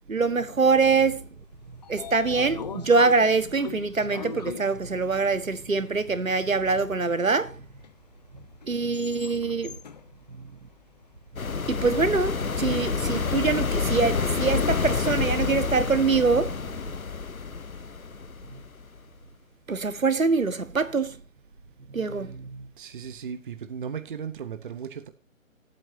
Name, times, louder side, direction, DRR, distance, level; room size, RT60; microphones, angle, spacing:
voice 1, 0.1-1.3 1.9-7.6 8.7-9.7 10.3-10.4 11.7-16.6 18.5-18.6 19.7-21.2 21.9-22.7, right 4 dB, 75° right, 1.6 m, -24 dB
Train / Sliding door, 1.4-11.5, left 6 dB, 30° left, 0.9 m, -43 dB
sound 1, 11.4-19.0, left 5 dB, 80° left, 0.9 m, -28 dB
voice 2, 22.8-25.1, right 7 dB, 40° right, 1.1 m, -36 dB
18.5 x 8.8 x 2.8 m
figure-of-eight pair, 140°, 41 cm